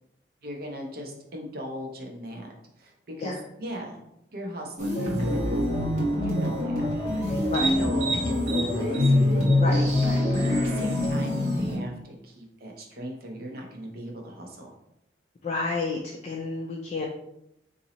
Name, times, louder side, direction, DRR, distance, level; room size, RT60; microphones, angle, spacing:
voice 1, 0.4-2.5 2.8-4.0 4.3-5.4 6.2-7.2 7.6-9.8 10.4-14.7, equal, 55° right, 1 dB, 0.7 m, -38 dB
sound 1, 4.8-11.8, left 1 dB, 40° right, 1.1 m, -24 dB
voice 2, 9.6-10.2 15.4-17.0, left 3 dB, 40° left, 0 dB, 0.3 m, -31 dB
2.9 x 2.7 x 4.0 m, 0.82 s
head